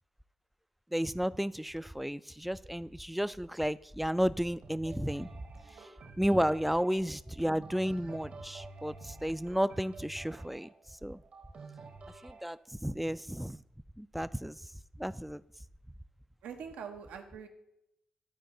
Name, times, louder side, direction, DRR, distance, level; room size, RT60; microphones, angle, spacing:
voice 1, 0.9-5.3 5.7-5.9 6.2-11.2 12.2-13.6 14.0-14.7 15.0-15.4, equal, 5° right, 16 dB, 0.3 m, -33 dB
sound 1, 4.6-12.5, right 3 dB, 60° right, 1.3 m, -50 dB
voice 2, 5.6-6.2 16.4-17.5, right 7 dB, 80° right, 5 dB, 0.8 m, -45 dB
12.5 x 4.6 x 3.9 m, 0.83 s
supercardioid pair, 50°, 3 cm